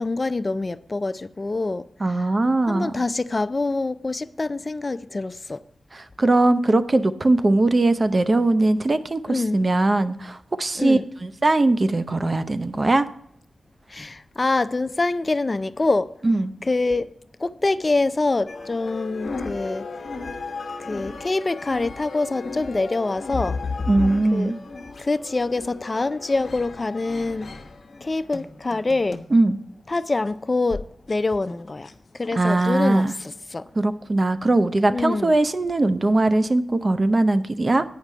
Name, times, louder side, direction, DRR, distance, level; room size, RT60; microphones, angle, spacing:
voice 1, 0.0-1.8 2.7-5.6 9.3-9.7 10.8-11.0 13.9-16.1 16.6-17.1 17.4-19.9 20.8-23.5 24.3-24.5 25.0-27.5 28.0-29.2 29.9-31.9 32.2-33.6 34.9-35.4, left 3 dB, 40° left, 0.4 m, -25 dB
voice 2, 2.0-2.9 5.9-13.1 16.2-16.5 23.9-24.6 29.3-29.6 32.3-33.1 33.8-37.8, right 2 dB, 40° right, 0.7 m, -20 dB
sound 1, 18.5-29.4 29.9-30.0 30.7-30.8 31.1-31.2 31.5-31.9 32.2-32.7 33.0-33.3, left 4 dB, 60° left, 1.0 m, -35 dB
8.4 x 5.9 x 6.5 m
cardioid pair, 50°, 0 cm